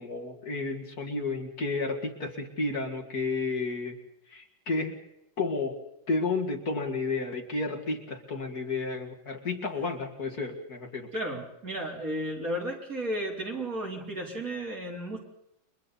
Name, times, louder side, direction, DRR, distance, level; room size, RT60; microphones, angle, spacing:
voice 1, 0.0-4.0 4.3-4.9 5.4-5.8 6.1-11.1, left 3 dB, 50° left, 2 dB, 2.6 m, -31 dB
voice 2, 11.1-15.2, right 1 dB, 45° right, -1 dB, 4.4 m, -33 dB
30.0 x 24.5 x 4.2 m, 0.83 s
omnidirectional pair, 2.1 m